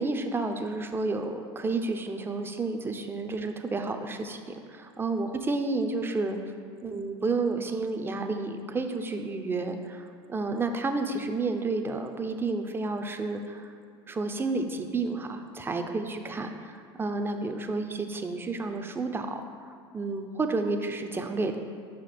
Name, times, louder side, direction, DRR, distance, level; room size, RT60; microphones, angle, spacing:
voice 1, 0.0-6.4 6.8-13.7 14.1-19.4 19.9-21.5, right 3 dB, 15° right, 6 dB, 0.5 m, -31 dB
5.7 x 5.1 x 4.2 m, 2.2 s
hypercardioid pair, 90°, 14 cm